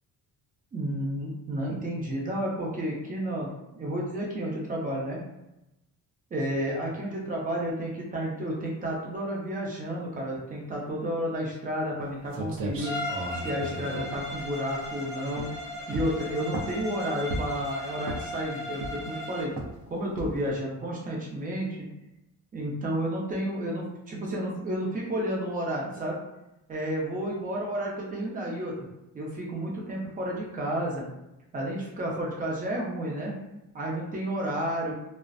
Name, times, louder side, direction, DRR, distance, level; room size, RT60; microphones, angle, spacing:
voice 1, 0.7-5.2 6.3-13.0 13.3-15.5 15.9-19.5 19.9-21.9 22.5-26.2 26.7-28.7 29.1-31.0 31.5-33.4 33.7-34.9, right 1 dB, 25° right, -3 dB, 0.6 m, -31 dB
sound 1, 12.0-12.1 12.3-14.9 15.3-15.6 15.9-16.9 17.3-17.7 18.0-18.4 18.8-19.2 19.6-19.8 20.2-20.5, right 2 dB, 80° right, 0.5 m, -35 dB
Bowed string instrument, 12.8-19.6, left 1 dB, 10° left, 0.3 m, -37 dB
2.4 x 2.1 x 2.5 m, 0.91 s
cardioid pair, 140°, 34 cm